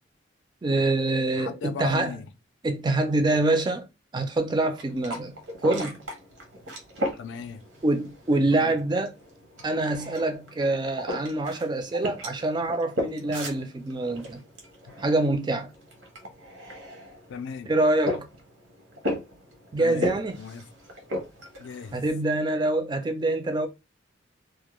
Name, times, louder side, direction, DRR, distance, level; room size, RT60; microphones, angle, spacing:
voice 1, 0.6-2.2 2.6-3.9 4.1-5.3 5.6-6.0 7.8-9.1 9.6-14.4 15.0-15.7 17.7-18.3 19.7-20.4 21.9-23.7, right 2 dB, 20° right, 0.3 m, -25 dB
voice 2, 1.4-2.3 7.2-7.6 8.3-8.7 17.3-17.7 19.8-20.6 21.6-22.0, left 6 dB, 65° left, 0.3 m, -38 dB
sound 1, 4.6-22.4, left 1 dB, 80° right, 0.9 m, -37 dB
2.2 x 2.1 x 2.9 m
head